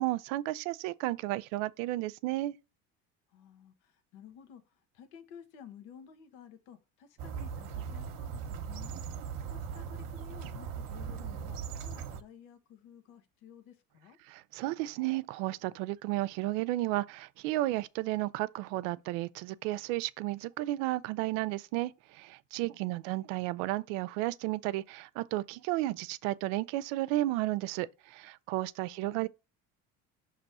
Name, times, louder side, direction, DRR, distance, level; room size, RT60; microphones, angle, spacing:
voice 1, 0.0-2.6 14.3-29.3, right 17 dB, 80° right, 0.5 m, -33 dB
voice 2, 3.3-8.9 9.5-14.2 22.6-23.2 28.9-29.3, left 8 dB, 80° left, 1.3 m, -53 dB
sound 1, 7.2-12.2, right 6 dB, 65° right, 0.9 m, -39 dB
5.9 x 3.0 x 5.4 m
supercardioid pair, 100°, 36 cm